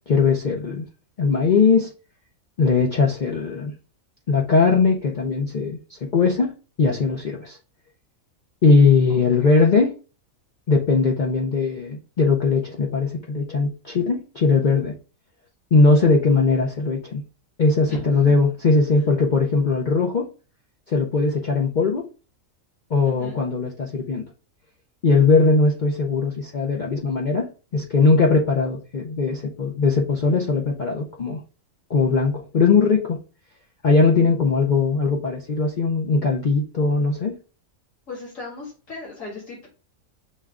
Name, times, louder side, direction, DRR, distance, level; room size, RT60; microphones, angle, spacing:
voice 1, 0.1-0.8 1.2-1.9 2.6-3.7 4.3-7.6 8.6-9.9 10.7-14.9 15.7-17.2 17.6-20.3 20.9-22.1 22.9-24.2 25.0-31.4 31.9-33.2 33.8-37.3, left 4 dB, 45° left, -1 dB, 0.6 m, -20 dB
voice 2, 9.1-9.7 17.9-18.3 18.9-19.0 23.1-23.4 38.1-39.7, left 3 dB, 70° left, -5 dB, 2.8 m, -38 dB
6.4 x 2.3 x 3.6 m, 0.34 s
omnidirectional pair, 1.4 m